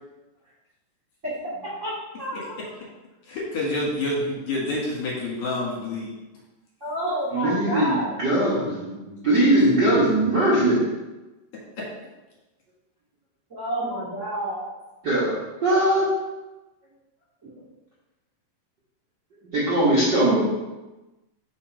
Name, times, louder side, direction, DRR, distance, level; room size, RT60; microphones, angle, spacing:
voice 1, 2.2-2.7 6.8-8.2 13.5-14.6 17.4-17.5, right 1 dB, 30° right, -9 dB, 1.5 m, -29 dB
voice 2, 3.3-6.1 11.8-11.9, left 2 dB, 60° left, -5 dB, 2.7 m, -28 dB
voice 3, 7.3-10.8 15.0-15.3 15.6-16.1 19.5-20.4, right 1 dB, 50° right, -9 dB, 1.3 m, -20 dB
5.7 x 5.1 x 4.5 m, 1.1 s
omnidirectional pair, 3.9 m